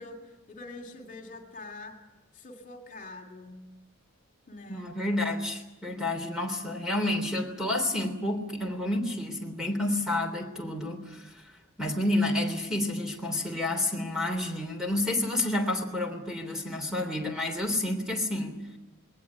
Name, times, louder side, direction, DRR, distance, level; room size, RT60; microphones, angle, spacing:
voice 1, 0.0-2.0 2.3-3.6 4.5-4.8, left 2 dB, 35° left, 4 dB, 2.8 m, -44 dB
voice 2, 4.7-11.5 11.8-18.6, left 1 dB, 5° right, 3 dB, 3.2 m, -30 dB
21.0 x 18.5 x 9.4 m, 1.0 s
head